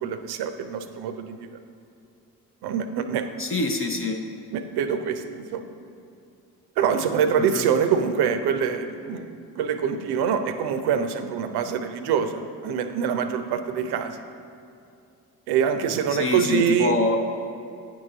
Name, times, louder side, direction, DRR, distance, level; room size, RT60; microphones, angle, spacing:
voice 1, 0.0-1.5 2.6-3.3 4.5-5.7 6.8-14.2 15.5-16.9, right 7 dB, 55° right, 8 dB, 0.6 m, -25 dB
voice 2, 3.4-4.2 7.4-7.6 16.1-17.2, left 3 dB, 30° left, 3 dB, 0.7 m, -25 dB
9.3 x 4.6 x 3.9 m, 2.5 s
hypercardioid pair, 45°, 46 cm